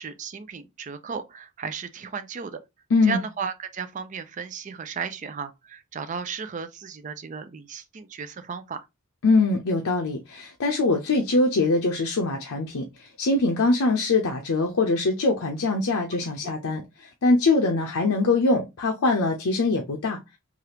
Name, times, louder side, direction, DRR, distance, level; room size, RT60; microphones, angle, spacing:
voice 1, 0.0-2.6 3.0-8.9, right 6 dB, 35° right, 0.4 m, -35 dB
voice 2, 2.9-3.2 9.2-20.2, left 3 dB, 90° left, 0.6 m, -23 dB
3.3 x 2.4 x 2.8 m
head